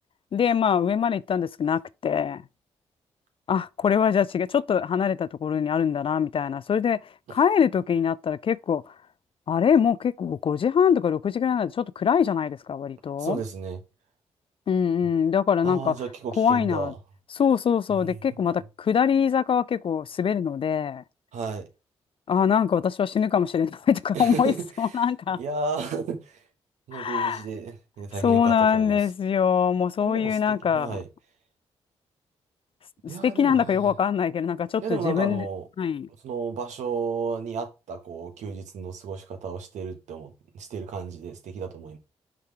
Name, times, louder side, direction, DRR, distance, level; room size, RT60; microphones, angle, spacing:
voice 1, 0.3-2.4 3.5-7.0 7.3-8.8 9.5-13.4 14.7-15.9 16.4-16.9 17.3-21.0 22.3-25.4 26.9-27.4 28.2-31.0 33.2-35.5 35.8-36.1, left 7 dB, 45° left, 0.4 m, -23 dB
voice 2, 13.2-13.8 15.6-17.0 18.0-18.2 21.3-21.7 24.1-24.7 25.3-26.4 26.9-29.0 30.0-31.1 33.1-33.9 34.8-35.7 36.2-42.0, right 5 dB, 75° right, 1.1 m, -33 dB
5.7 x 3.5 x 4.7 m
supercardioid pair, 45°, 12 cm